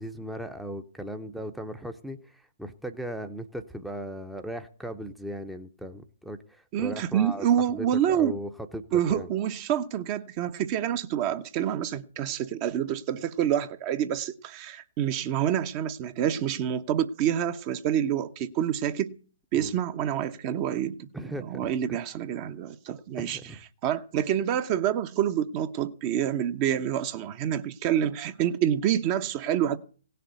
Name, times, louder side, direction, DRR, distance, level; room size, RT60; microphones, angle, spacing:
voice 1, 0.0-9.3 19.5-19.7 21.1-21.6 21.9-22.0 23.2-23.6, right 1 dB, ahead, 0.8 m, -38 dB
voice 2, 6.7-8.4 8.9-19.2 19.5-21.1 21.5-23.4 23.8-29.8, right 10 dB, 30° right, 0.9 m, -27 dB
17.0 x 6.8 x 9.2 m
figure-of-eight pair, 130°, 0 cm